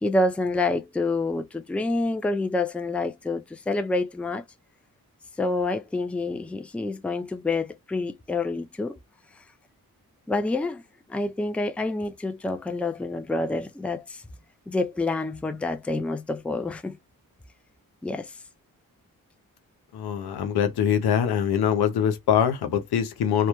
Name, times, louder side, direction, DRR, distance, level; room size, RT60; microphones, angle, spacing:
voice 1, 0.0-4.4 5.4-9.0 10.3-10.8 11.1-14.2 14.7-17.0 18.0-18.3, left 2 dB, 5° left, 0.3 m, -27 dB
voice 2, 19.9-23.5, left 8 dB, 85° left, 0.6 m, -23 dB
2.2 x 2.0 x 2.9 m
cardioid pair, 50°, 37 cm